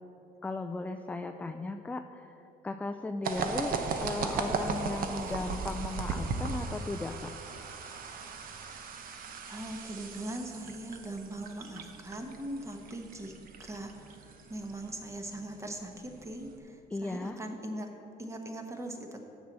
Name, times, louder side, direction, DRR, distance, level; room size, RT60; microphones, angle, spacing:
voice 1, 0.4-2.4 2.6-7.3 16.9-17.4, left 2 dB, 10° left, 6 dB, 0.3 m, -36 dB
sound 1, 3.2-16.6, right 4 dB, 55° right, 0.9 m, -38 dB
voice 2, 9.5-13.3 13.6-17.9 18.2-19.2, right 1 dB, 15° right, 4 dB, 1.1 m, -40 dB
7.3 x 6.1 x 7.3 m, 2.8 s
cardioid pair, 110°, 17 cm